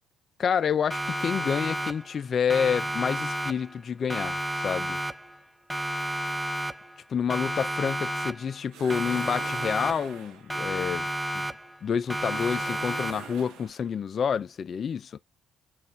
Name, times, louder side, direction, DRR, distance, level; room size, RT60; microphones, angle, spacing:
voice 1, 0.4-4.4 4.6-5.0 7.1-11.1 11.3-11.5 11.8-15.1, left 7 dB, 50° left, 0.4 m, -28 dB
Siren, 0.9-2.2 2.5-3.8 4.1-5.4 5.7-7.0 7.3-8.6 8.9-10.2 10.5-11.8 12.1-13.4, right 1 dB, 10° right, 0.5 m, -32 dB
sound 1, 8.7-10.6 12.1-13.9, right 8 dB, 75° right, 0.9 m, -43 dB
5.8 x 2.5 x 2.6 m
supercardioid pair, 60°, 0 cm